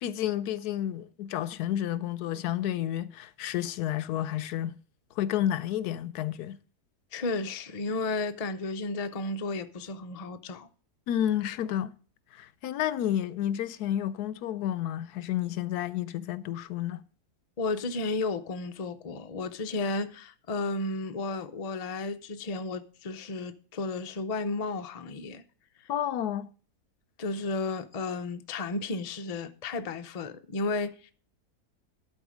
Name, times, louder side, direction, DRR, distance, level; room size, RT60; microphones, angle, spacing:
voice 1, 0.0-4.8 5.2-6.6 11.1-11.9 12.3-17.0 25.9-26.5, left 11 dB, 80° left, 1.1 m, -30 dB
voice 2, 7.1-10.7 17.6-25.4 25.8-25.9 27.2-31.1, left 3 dB, 45° left, 0.4 m, -33 dB
11.5 x 4.4 x 6.2 m
omnidirectional pair, 1.7 m